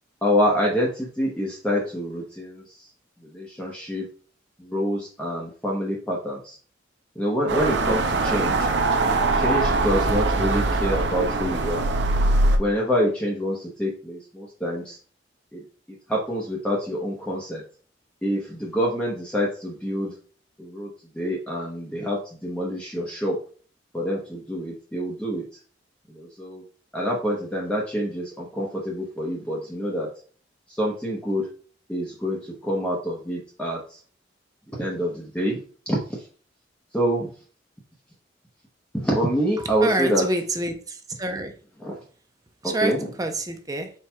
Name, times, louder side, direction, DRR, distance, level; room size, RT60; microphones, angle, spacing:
voice 1, 0.2-2.6 3.3-4.1 4.6-6.6 7.2-8.7 9.4-11.9 12.5-15.0 15.5-15.6 16.1-17.6 18.2-20.1 20.6-20.9 21.1-23.4 23.9-25.4 26.1-26.6 26.9-30.1 30.7-31.5 31.9-34.0 34.8-35.6 35.9-36.0 36.9-37.3 38.9-40.2 41.8-42.0 42.8-43.1, equal, 5° left, -4 dB, 0.8 m, -26 dB
sound 1, 7.5-12.6, right 2 dB, 65° right, 0.5 m, -22 dB
voice 2, 39.6-41.5 42.6-43.9, right 2 dB, 20° right, 6 dB, 0.5 m, -27 dB
4.6 x 4.4 x 2.2 m, 0.41 s
head